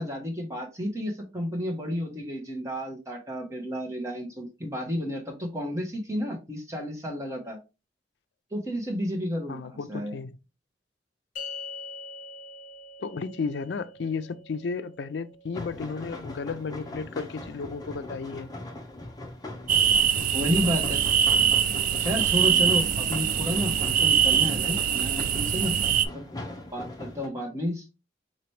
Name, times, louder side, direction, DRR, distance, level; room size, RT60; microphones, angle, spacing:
voice 1, 0.0-7.6 8.5-10.1 20.3-21.0 22.0-25.8 26.1-26.2 26.7-27.9, equal, 15° right, 1.1 m, -31 dB
voice 2, 9.5-10.4 13.0-18.5, left 5 dB, 75° left, 0.4 m, -33 dB
sound 1, 11.4-17.9, left 3 dB, 50° left, 1.1 m, -44 dB
sound 2, 15.5-27.3, left 1 dB, 20° left, 0.7 m, -40 dB
sound 3, 19.7-26.1, right 8 dB, 50° right, 0.3 m, -23 dB
4.1 x 2.9 x 3.2 m
head